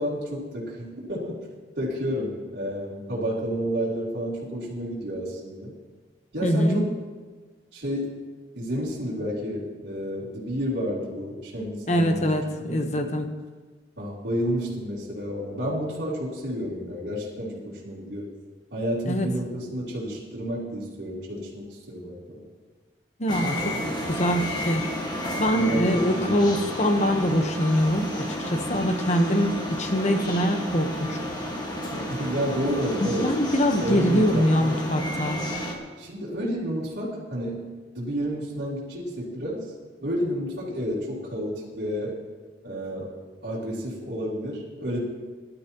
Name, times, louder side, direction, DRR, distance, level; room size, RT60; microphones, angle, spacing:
voice 1, 0.0-1.3 1.8-5.7 6.3-6.9 7.7-8.1 8.5-12.2 12.6-13.0 14.0-18.3 18.7-22.4 25.5-26.4 28.7-28.8 31.9-33.3 33.8-34.7 36.0-37.6 37.9-39.7 40.0-42.2 42.6-43.0 43.4-45.0, equal, 75° right, -11 dB, 3.3 m, -30 dB
voice 2, 6.4-6.8 11.9-13.3 19.1-19.3 23.2-24.9 25.4-31.2 33.2-35.4, equal, 40° left, 6 dB, 1.1 m, -24 dB
sound 1, 23.3-35.7, equal, 25° left, 1.6 m, -31 dB
19.5 x 12.0 x 3.0 m, 1.4 s
head